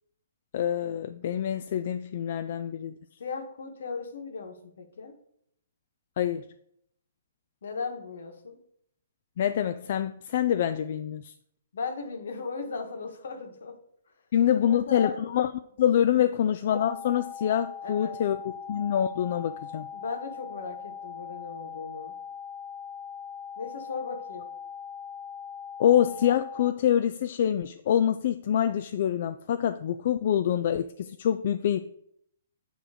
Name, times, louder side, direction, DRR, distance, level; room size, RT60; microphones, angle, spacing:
voice 1, 0.5-2.9 6.2-6.4 9.4-11.3 14.3-15.5 15.8-18.4 18.7-19.9 25.8-31.8, left 10 dB, 50° left, 9 dB, 0.3 m, -25 dB
voice 2, 3.2-5.1 7.6-8.6 11.7-13.8 14.5-15.2 17.8-18.2 19.9-22.1 23.6-24.5, left 4 dB, 70° left, 5 dB, 1.4 m, -37 dB
sound 1, 16.7-26.7, left 7 dB, 45° right, 1.5 m, -41 dB
8.9 x 3.1 x 4.9 m, 0.71 s
hypercardioid pair, 160°, 0 cm